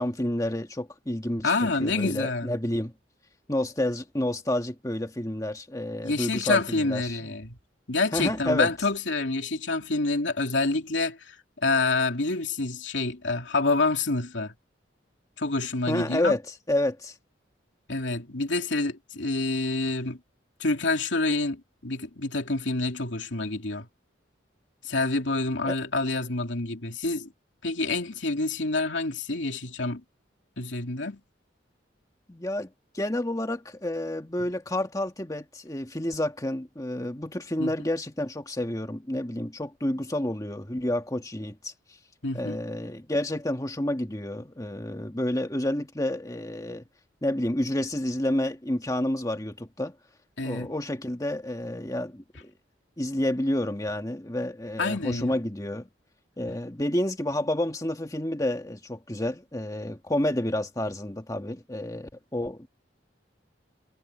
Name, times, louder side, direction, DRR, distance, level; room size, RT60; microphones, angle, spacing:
voice 1, 0.0-2.9 3.5-7.3 8.1-8.7 15.9-16.4 16.7-17.1 25.6-25.8 32.3-32.7 32.9-41.7 42.3-46.8 47.2-49.9 50.4-52.5 53.0-55.9 56.4-62.7, left 1 dB, 20° left, 1.7 m, -29 dB
voice 2, 1.4-2.5 6.0-7.6 7.9-11.4 11.6-14.5 15.4-16.4 17.9-20.2 20.6-23.9 24.8-27.3 27.6-30.0 30.6-31.2 37.6-37.7 42.2-42.6 50.4-50.7 54.8-55.4 56.5-56.6, left 3 dB, 80° left, 2.8 m, -27 dB
head